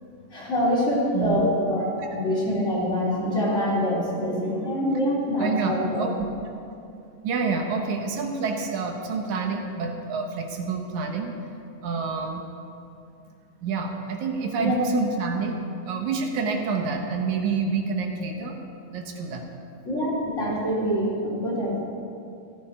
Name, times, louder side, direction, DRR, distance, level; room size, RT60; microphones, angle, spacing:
voice 1, 0.3-6.1 14.6-14.8 19.9-21.8, equal, 25° left, -6 dB, 3.5 m, -25 dB
voice 2, 1.1-1.5 5.4-6.1 7.2-11.3 11.8-12.5 13.6-15.6 15.9-18.6 18.9-19.5, right 4 dB, 80° right, 3 dB, 2.5 m, -28 dB
15.0 x 13.5 x 4.4 m, 2.6 s
omnidirectional pair, 3.3 m